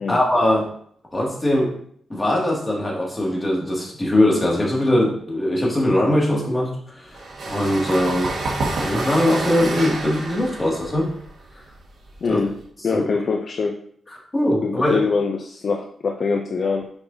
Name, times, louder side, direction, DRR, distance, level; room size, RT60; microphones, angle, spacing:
voice 1, 0.1-0.7 1.1-1.8 2.1-8.3 8.8-11.1 12.3-12.4 12.9-13.0 14.3-15.0, left 1 dB, 20° left, -3 dB, 2.3 m, -21 dB
sound 1, 7.1-12.6, right 2 dB, 70° right, 1.8 m, -28 dB
voice 2, 12.2-12.5 12.8-13.8 14.6-16.9, left 4 dB, 55° left, 3 dB, 0.5 m, -23 dB
7.0 x 5.2 x 2.8 m, 0.62 s
cardioid pair, 95°, 0 cm